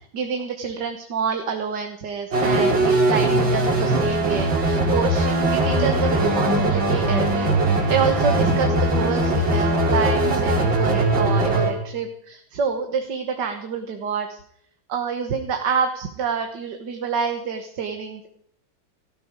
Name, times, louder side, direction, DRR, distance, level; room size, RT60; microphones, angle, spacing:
voice 1, 0.0-7.5 7.9-14.4 14.9-18.3, right 6 dB, 65° right, 5 dB, 1.9 m, -27 dB
sound 1, 2.3-11.7, right 2 dB, 90° right, 3.6 m, -20 dB
17.5 x 12.5 x 5.2 m, 0.67 s
omnidirectional pair, 2.0 m